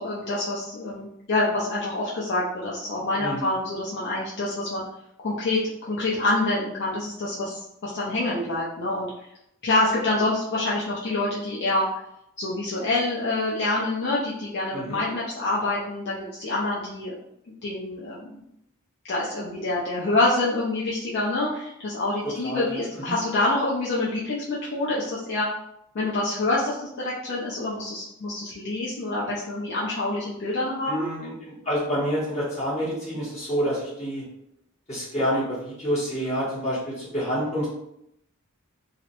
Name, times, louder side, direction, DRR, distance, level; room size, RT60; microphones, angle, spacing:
voice 1, 0.0-4.8 5.2-5.6 5.9-9.1 9.6-11.9 12.4-17.1 17.6-18.4 19.1-25.5 25.9-31.1, left 2 dB, 55° left, -6 dB, 0.4 m, -26 dB
voice 2, 3.2-3.5 14.7-15.0 22.4-23.1 30.8-34.2 34.9-37.7, equal, 30° left, -8 dB, 0.9 m, -28 dB
2.7 x 2.0 x 2.5 m, 0.80 s
head